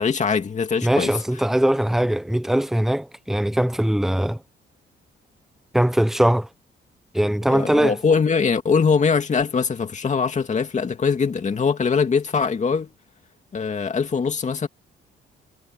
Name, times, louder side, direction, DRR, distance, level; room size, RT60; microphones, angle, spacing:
voice 1, 0.0-1.1 7.5-12.9 13.5-14.7, left 5 dB, 35° left, 2.2 m, -22 dB
voice 2, 0.8-4.4 5.7-6.5 7.1-8.0, right 1 dB, ahead, 1.1 m, -21 dB
cardioid pair, 90°, 20 cm